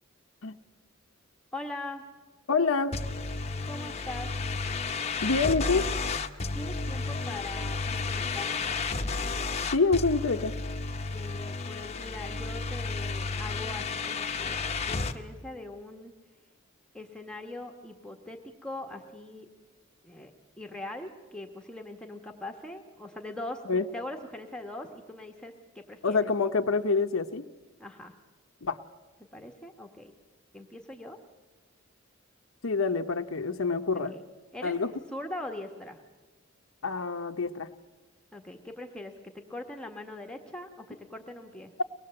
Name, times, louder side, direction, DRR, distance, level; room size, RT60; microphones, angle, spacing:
voice 1, 1.5-2.0 3.6-4.3 6.5-8.5 11.1-16.1 16.9-19.5 20.0-20.3 20.6-26.2 27.8-28.1 29.3-30.1 30.5-31.2 34.1-34.2 34.5-36.0 38.3-41.7, left 2 dB, 5° left, 3 dB, 1.4 m, -41 dB
voice 2, 2.5-3.0 5.2-5.9 9.7-10.5 23.7-23.8 26.0-27.5 28.6-28.8 32.6-34.1 34.6-34.9 36.8-37.7, left 4 dB, 80° left, 6 dB, 0.9 m, -26 dB
sound 1, 2.9-15.2, left 4 dB, 30° left, 0.9 m, -32 dB
23.5 x 19.5 x 7.7 m, 1.2 s
head